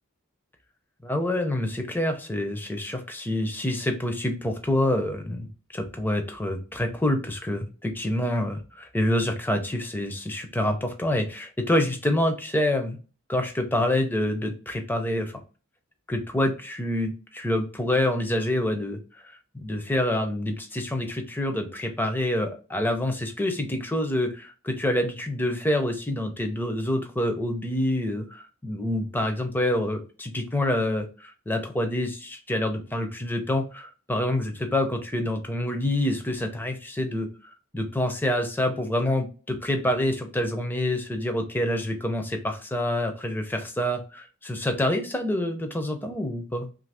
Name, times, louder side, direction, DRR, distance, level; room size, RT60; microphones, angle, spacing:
voice 1, 1.0-5.5 5.7-13.0 13.3-15.3 16.1-19.0 19.5-44.0 44.4-46.7, left 1 dB, 10° left, 5 dB, 0.4 m, -27 dB
3.0 x 2.6 x 3.2 m, 0.36 s
head